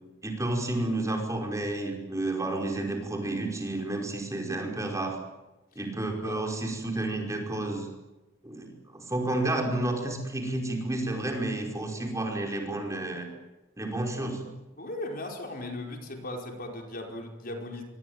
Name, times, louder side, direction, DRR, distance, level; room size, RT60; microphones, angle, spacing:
voice 1, 0.2-5.2 5.8-7.9 8.4-13.3 13.8-14.4, right 2 dB, 15° right, 2 dB, 5.1 m, -31 dB
voice 2, 14.8-17.8, left 1 dB, 50° left, 2 dB, 4.9 m, -37 dB
25.5 x 24.0 x 9.5 m, 1.1 s
head